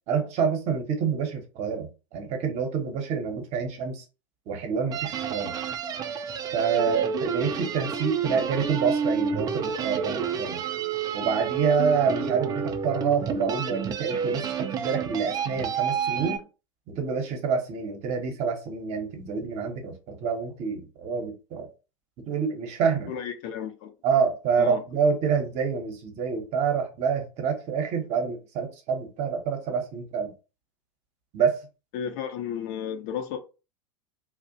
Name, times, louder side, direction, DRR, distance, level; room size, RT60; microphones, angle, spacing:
voice 1, 0.1-4.0 4.5-5.5 6.5-10.6 11.1-16.4 16.9-21.7 22.3-23.1 24.0-30.3 31.3-31.6, right 6 dB, 40° right, 0.8 m, -27 dB
sound 1, 4.9-16.4, right 7 dB, 25° right, 0.3 m, -29 dB
voice 2, 6.8-7.2 23.1-23.9 24.6-24.8 31.9-33.4, left 8 dB, 50° left, 0.6 m, -33 dB
2.4 x 2.0 x 2.6 m
figure-of-eight pair, 85°, 17 cm